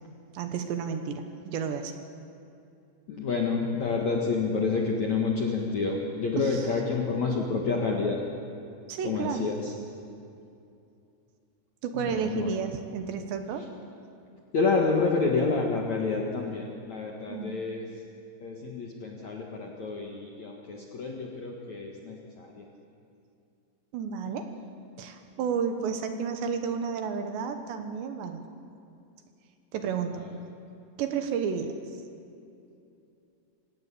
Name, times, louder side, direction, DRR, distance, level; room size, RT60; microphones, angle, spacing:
voice 1, 0.3-2.0 6.4-6.6 8.9-9.5 11.8-13.6 17.3-17.7 23.9-24.5 25.0-28.4 29.7-30.3 31.0-31.7, right 6 dB, 70° right, 7 dB, 3.2 m, -31 dB
voice 2, 3.1-8.2 9.0-9.7 11.9-12.5 14.5-17.9 18.4-22.7 30.1-30.4, left 4 dB, 60° left, 0 dB, 1.9 m, -29 dB
27.5 x 17.0 x 8.5 m, 2.6 s
omnidirectional pair, 5.7 m